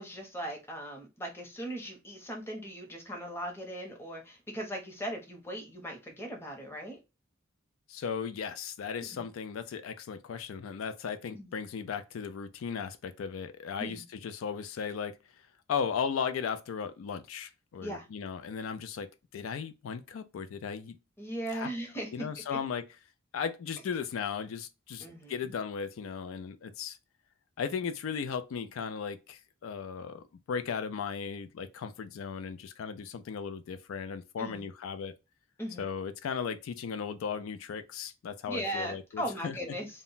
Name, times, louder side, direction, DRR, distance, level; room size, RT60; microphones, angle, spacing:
voice 1, 0.0-7.0 9.1-9.2 11.3-11.5 13.8-14.0 17.8-18.0 21.2-22.1 25.0-25.5 34.4-34.6 35.6-35.8 38.5-39.9, right 1 dB, 10° left, 0.6 m, -38 dB
voice 2, 7.9-15.1 15.7-21.0 21.5-21.7 22.1-22.9 23.3-27.0 27.6-35.2 35.8-39.7, left 6 dB, 85° left, 0.3 m, -36 dB
2.1 x 2.1 x 3.8 m
head